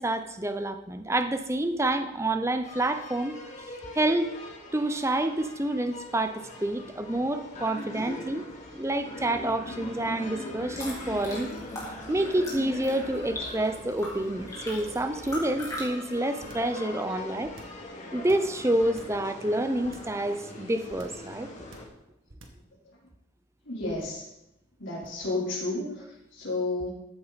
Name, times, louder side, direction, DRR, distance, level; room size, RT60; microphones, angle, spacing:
voice 1, 0.0-3.4 3.9-4.3 4.7-8.4 8.7-11.5 12.1-17.5 18.1-21.5, right 1 dB, 15° right, 9 dB, 0.6 m, -28 dB
sound 1, 2.6-21.9, left 1 dB, 35° left, 2.1 m, -41 dB
sound 2, 10.5-15.8, left 1 dB, 15° left, 3.2 m, -40 dB
sound 3, 16.4-16.8 17.4-17.9 18.3-19.3 19.8-20.2 20.9-21.3 21.7-22.0 22.3-22.7 23.9-24.3 25.0-25.3, right 1 dB, 70° right, 1.6 m, -50 dB
voice 2, 23.6-24.2 24.8-26.9, left 2 dB, 70° left, -7 dB, 3.4 m, -31 dB
14.0 x 8.5 x 4.0 m, 0.88 s
head